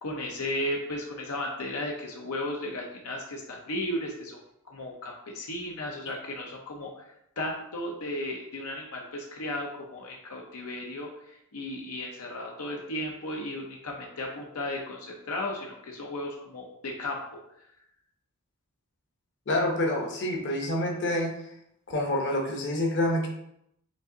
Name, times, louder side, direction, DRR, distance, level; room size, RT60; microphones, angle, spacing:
voice 1, 0.0-4.4 4.7-7.1 7.4-17.2, left 1 dB, 85° left, 0 dB, 0.8 m, -35 dB
voice 2, 19.5-21.3 21.9-23.3, left 1 dB, 55° left, 0 dB, 0.9 m, -27 dB
5.1 x 2.6 x 3.9 m, 0.77 s
head